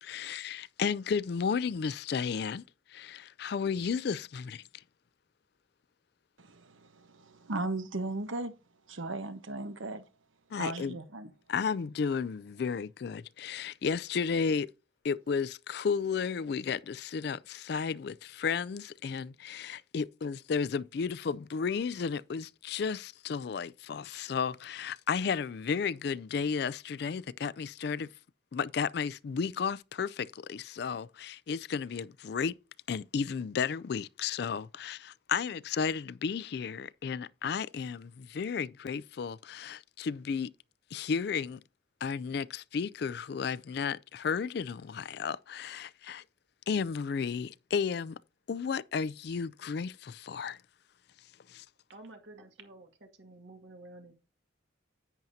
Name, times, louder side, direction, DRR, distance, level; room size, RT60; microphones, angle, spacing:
voice 1, 0.0-2.6 2.9-4.6 10.5-11.0 11.5-14.7 15.0-28.1 28.5-32.6 32.9-40.5 40.9-41.6 42.0-46.2 46.7-48.2 48.5-50.6 51.5-51.7, left 6 dB, 55° left, 0.3 m, -33 dB
voice 2, 6.4-8.5 8.9-10.0 10.5-11.3, right 2 dB, 85° right, 1.1 m, -37 dB
voice 3, 51.9-54.1, right 2 dB, 70° right, 2.1 m, -51 dB
10.5 x 9.1 x 2.7 m
head